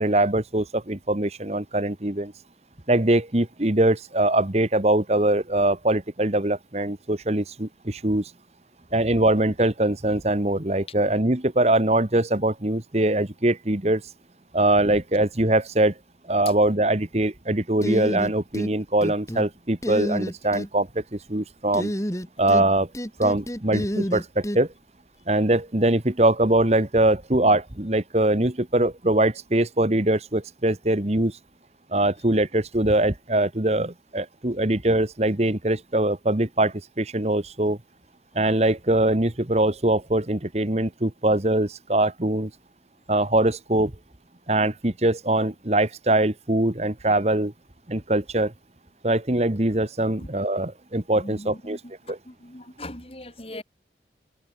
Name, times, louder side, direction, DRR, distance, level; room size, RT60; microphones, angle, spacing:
voice 1, 0.0-2.3 2.9-8.3 8.9-14.0 14.5-15.9 16.3-21.9 22.4-22.9 23.2-24.7 25.3-31.4 31.9-37.8 38.3-42.5 43.1-43.9 44.5-47.5 47.9-48.5 49.0-51.8 52.1-52.2, right 1 dB, 40° right, 1.5 m, -22 dB
sound 1, 17.8-18.7 19.0-19.5 19.8-20.7 21.7-22.7 22.9-24.6, equal, 15° left, 5.6 m, -28 dB
voice 2, 51.2-51.8 52.1-53.6, left 1 dB, 35° left, 4.3 m, -39 dB
head